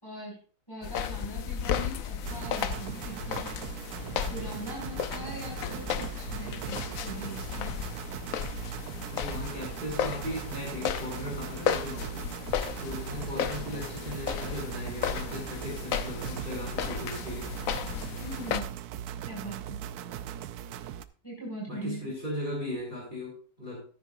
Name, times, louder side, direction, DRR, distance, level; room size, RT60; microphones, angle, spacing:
voice 1, 0.0-0.4 0.7-3.5 4.3-7.7 13.1-13.7 18.2-18.7 19.2-19.8 21.2-22.1, right 1 dB, 15° left, -4 dB, 6.1 m, -41 dB
sound 1, 0.8-18.6, left 8 dB, 65° left, 1.1 m, -34 dB
sound 2, 2.2-21.0, right 10 dB, 80° right, 1.1 m, -39 dB
voice 2, 9.1-12.3 12.8-17.5 21.7-23.9, left 1 dB, 30° right, -4 dB, 4.2 m, -37 dB
13.5 x 10.0 x 2.6 m, 0.40 s
omnidirectional pair, 1.6 m